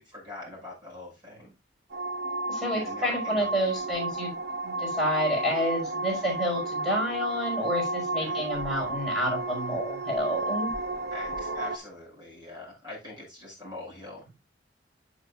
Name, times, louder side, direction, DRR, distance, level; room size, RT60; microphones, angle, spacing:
voice 1, 0.1-1.5 2.7-3.5 8.1-8.4 11.1-14.3, left 2 dB, 25° right, -2 dB, 5.9 m, -43 dB
sound 1, 1.9-11.8, right 2 dB, 60° right, 1.0 m, -32 dB
voice 2, 2.5-4.3 4.6-10.7, equal, 5° right, -3 dB, 5.2 m, -29 dB
9.5 x 7.4 x 2.4 m, 0.25 s
head